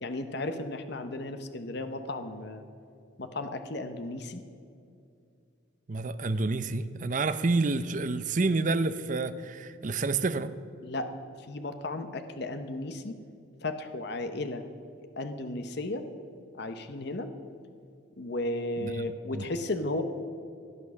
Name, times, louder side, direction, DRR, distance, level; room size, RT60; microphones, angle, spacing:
voice 1, 0.0-2.7 3.2-4.4 10.8-11.1 11.4-13.2 13.6-14.6 15.0-16.1 16.6-17.3 18.2-20.0, left 2 dB, 55° left, 8 dB, 0.8 m, -34 dB
voice 2, 5.9-10.5 18.8-19.1 19.3-19.5, right 3 dB, 40° right, 13 dB, 0.6 m, -29 dB
16.5 x 8.7 x 7.1 m, 2.5 s
head